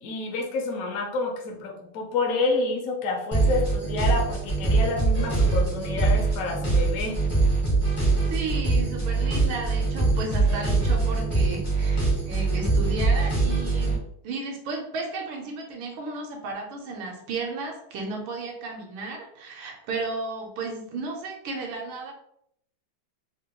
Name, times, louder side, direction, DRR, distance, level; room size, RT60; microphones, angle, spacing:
voice 1, 0.0-7.2, left 3 dB, 70° left, 0 dB, 0.8 m, -28 dB
sound 1, 3.3-14.0, right 3 dB, 35° left, 0.4 m, -23 dB
voice 2, 8.3-22.1, right 3 dB, 75° right, 1 dB, 1.4 m, -34 dB
3.6 x 2.2 x 2.8 m, 0.74 s
omnidirectional pair, 2.4 m